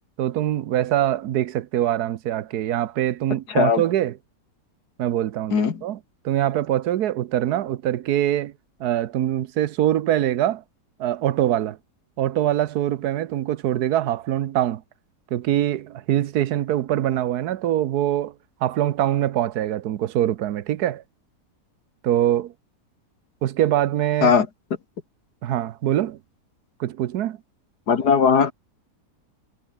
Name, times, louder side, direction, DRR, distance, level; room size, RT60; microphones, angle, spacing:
voice 1, 0.2-4.2 5.0-6.0 6.2-8.5 8.8-10.6 11.0-11.8 12.2-14.8 15.3-18.3 18.6-21.0 22.0-22.5 23.4-24.4 25.4-26.2 26.8-27.4, right 12 dB, 70° right, 1.3 m, -23 dB
voice 2, 3.5-3.8 5.5-5.8 24.2-24.5 27.9-28.5, left 6 dB, 70° left, 2.5 m, -18 dB
omnidirectional pair, 1.8 m